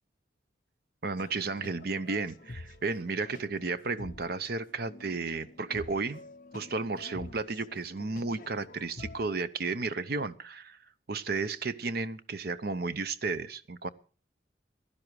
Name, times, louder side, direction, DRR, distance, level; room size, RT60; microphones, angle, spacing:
voice 1, 1.0-6.2 6.5-10.8 11.1-13.9, right 4 dB, 55° right, 13 dB, 0.8 m, -33 dB
sound 1, 1.2-9.4, left 2 dB, 45° left, 0.7 m, -48 dB
16.0 x 11.5 x 4.7 m, 0.39 s
head